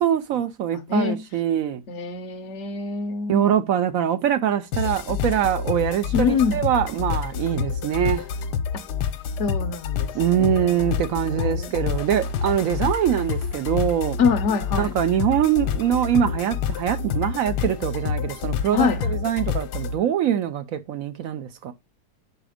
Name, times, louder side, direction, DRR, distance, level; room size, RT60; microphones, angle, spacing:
voice 1, 0.0-1.8 3.3-8.3 10.1-14.2 14.8-21.7, right 10 dB, 70° right, 0.9 m, -23 dB
voice 2, 0.7-1.2 1.9-3.5 6.1-6.6 9.4-10.1 10.4-11.7 14.2-14.9 18.7-19.1, left 6 dB, 60° left, 0.8 m, -25 dB
sound 1, 4.7-20.0, left 7 dB, 80° left, 1.2 m, -28 dB
5.0 x 4.9 x 4.9 m
omnidirectional pair, 1.8 m